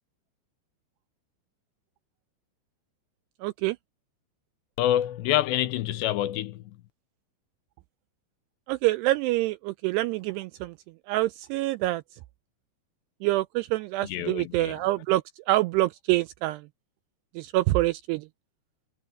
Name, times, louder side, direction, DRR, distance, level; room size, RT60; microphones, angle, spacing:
voice 1, 3.4-3.8 8.7-10.7 11.1-12.0 13.2-15.2 15.5-16.6 17.4-18.2, right 18 dB, 85° right, 2.4 m, -26 dB
voice 2, 4.8-6.8 14.0-14.8, left 13 dB, 80° left, 3.0 m, -27 dB
omnidirectional pair, 5.2 m